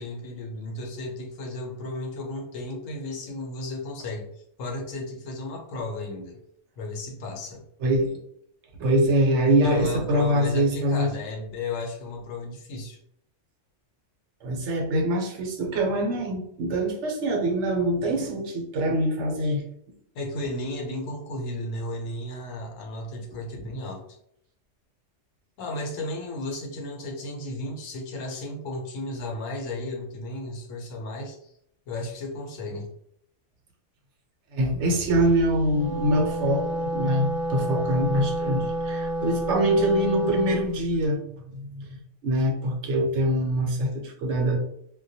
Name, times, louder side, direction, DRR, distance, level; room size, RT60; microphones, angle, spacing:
voice 1, 0.0-4.3 4.6-6.4 6.8-7.6 9.6-13.0 20.1-24.2 25.6-31.5 31.9-32.9, left 2 dB, 90° left, 1 dB, 1.0 m, -34 dB
voice 2, 7.8-8.2 8.8-11.1 14.4-19.6 34.5-42.0 42.2-44.6, right 1 dB, 70° right, 1 dB, 0.9 m, -24 dB
Wind instrument woodwind instrument, 35.5-40.7, right 1 dB, 60° left, 0.6 m, -29 dB
2.2 x 2.2 x 2.6 m, 0.71 s
omnidirectional pair, 1.3 m